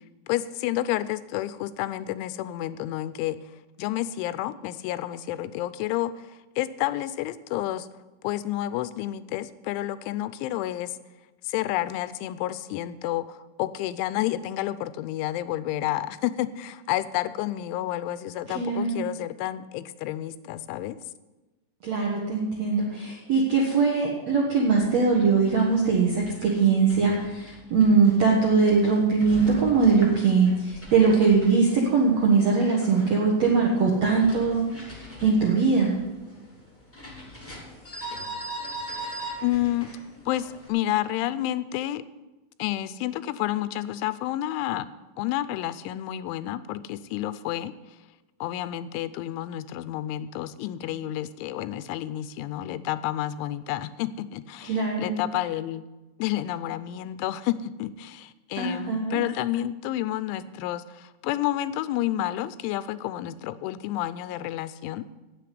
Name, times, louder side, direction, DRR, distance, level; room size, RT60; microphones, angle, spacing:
voice 1, 0.3-3.4 3.8-7.9 8.2-11.0 11.4-21.0 39.4-39.9 40.3-42.0 42.6-44.9 45.2-47.7 48.4-55.8 56.2-65.0, left 14 dB, 90° left, 14 dB, 3.0 m, -30 dB
voice 2, 18.5-19.0 21.8-35.9 54.7-55.2 58.6-59.2, right 4 dB, 70° right, -2 dB, 1.5 m, -21 dB
sound 1, 25.3-40.7, equal, 10° left, 0.8 m, -41 dB
9.3 x 8.3 x 9.5 m, 1.1 s
omnidirectional pair, 5.4 m